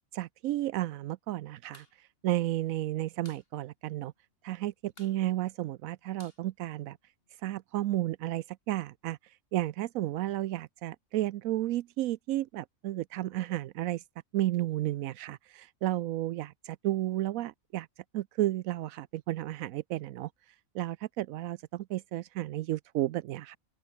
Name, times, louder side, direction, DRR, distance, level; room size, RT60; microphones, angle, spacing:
voice 1, 0.1-1.9 2.2-4.1 4.4-7.0 7.4-9.2 9.5-14.0 14.3-17.9 18.1-20.3 20.7-23.6, right 15 dB, 85° right, 1.0 m, -32 dB
sound 1, 1.7-2.0 2.2-2.3 2.6-3.5 3.8-3.9 4.2-4.6 4.9-7.3, left 2 dB, 45° left, 4.2 m, -57 dB
open air
omnidirectional pair, 1.4 m